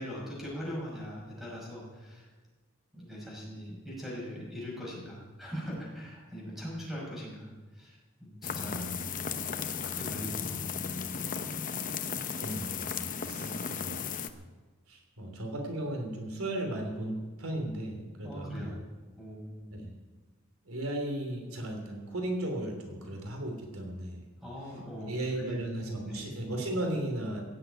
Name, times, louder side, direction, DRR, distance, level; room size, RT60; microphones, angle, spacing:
voice 1, 0.0-2.3 2.9-8.9 9.8-11.0 13.3-13.8 18.2-18.8 19.1-19.7 24.4-25.6 26.0-26.3, equal, ahead, -5 dB, 5.7 m, -41 dB
sound 1, 8.4-14.3, left 6 dB, 40° left, 0.8 m, -35 dB
voice 2, 12.4-14.0 14.3-14.4 14.9-18.8 19.7-19.9 20.6-24.2 25.0-27.4, right 1 dB, 85° right, 2 dB, 3.2 m, -36 dB
16.5 x 8.1 x 9.0 m, 1.3 s
head